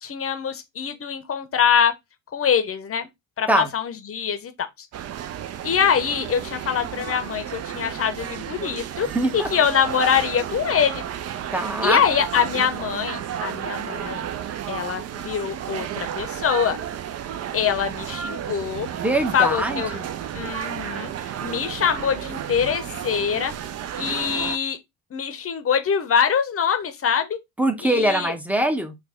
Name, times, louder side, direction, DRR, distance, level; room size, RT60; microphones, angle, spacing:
voice 1, 0.0-1.9 2.3-3.1 3.4-4.9 5.6-9.1 9.3-11.0 11.8-14.3 14.7-16.8 17.5-18.9 19.3-19.9 20.3-21.1 21.4-23.5 24.0-24.8 25.1-27.4 27.8-28.3, left 7 dB, 30° left, 0.8 m, -24 dB
sound 1, 4.9-24.6, right 10 dB, 40° right, 0.4 m, -32 dB
voice 2, 9.1-9.5 11.5-12.0 18.9-20.1 27.6-29.0, right 1 dB, 5° right, 0.7 m, -23 dB
3.3 x 2.2 x 3.5 m
hypercardioid pair, 65°, 43 cm